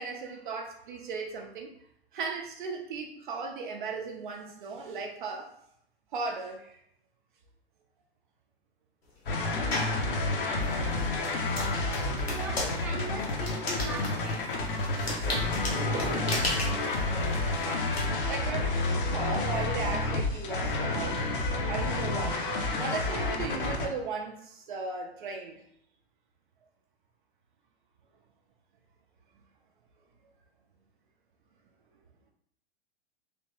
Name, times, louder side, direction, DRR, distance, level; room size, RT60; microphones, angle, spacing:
voice 1, 0.0-1.7 2.1-5.5 6.1-6.8 18.3-21.3 21.7-22.4 22.8-25.6, right 4 dB, 50° right, 2 dB, 0.5 m, -36 dB
sound 1, 9.3-23.9, left 2 dB, 55° left, 0.7 m, -30 dB
sound 2, 9.7-10.0 10.6-18.0, left 2 dB, 70° left, 1.1 m, -35 dB
voice 2, 12.2-14.4, right 1 dB, 5° right, -4 dB, 0.6 m, -39 dB
sound 3, 15.2-22.8, right 3 dB, 30° right, 0.9 m, -44 dB
3.3 x 2.9 x 2.9 m, 0.71 s
figure-of-eight pair, 100°, 32 cm